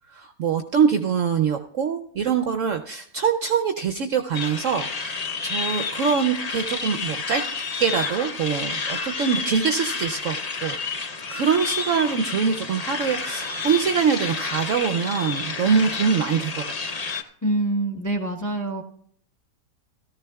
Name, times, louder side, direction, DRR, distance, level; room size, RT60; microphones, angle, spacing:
voice 1, 0.1-7.4 7.8-10.8 11.3-17.0, right 6 dB, 65° right, 5 dB, 0.8 m, -24 dB
sound 1, 4.3-17.2, left 4 dB, 75° left, 0.3 m, -30 dB
voice 2, 17.4-18.8, right 2 dB, 15° left, 1 dB, 0.6 m, -25 dB
17.0 x 14.0 x 2.3 m, 0.66 s
omnidirectional pair, 1.8 m